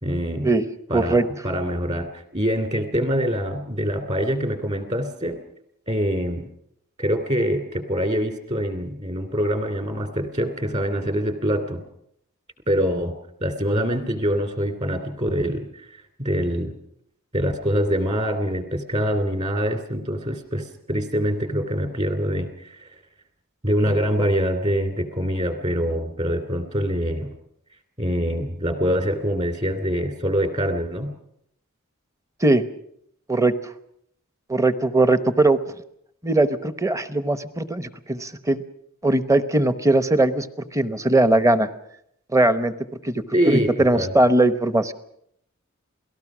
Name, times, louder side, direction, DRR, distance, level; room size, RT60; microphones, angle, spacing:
voice 1, 0.0-0.5 0.9-5.4 5.9-6.4 7.0-11.8 12.7-13.1 13.4-16.8 17.3-22.9 23.6-27.3 28.0-31.1 43.3-44.1, equal, 30° right, 7 dB, 2.8 m, -24 dB
voice 2, 0.9-1.3 32.4-32.6 33.3-33.7 34.5-35.6 36.2-38.6 39.0-41.7 42.3-42.7 43.0-44.9, right 2 dB, 15° right, 12 dB, 0.9 m, -20 dB
28.0 x 18.5 x 6.1 m, 0.74 s
head